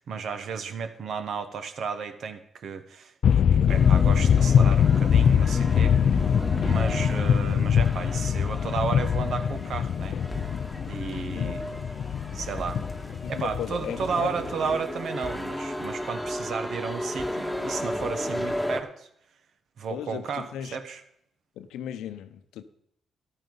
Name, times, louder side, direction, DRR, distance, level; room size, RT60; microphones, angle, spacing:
voice 1, 0.0-6.2 6.6-10.2 10.9-11.7 12.3-12.8 13.3-19.1 19.8-21.0, right 6 dB, 70° right, 9 dB, 1.2 m, -33 dB
sound 1, 3.2-14.7, left 8 dB, 65° left, 0.3 m, -23 dB
sound 2, 3.7-18.8, equal, 5° right, 1.9 m, -34 dB
voice 2, 13.2-14.5 19.9-20.8 21.6-22.6, left 10 dB, 85° left, 11 dB, 0.7 m, -36 dB
14.0 x 11.0 x 4.0 m, 0.72 s
supercardioid pair, 55°, 0 cm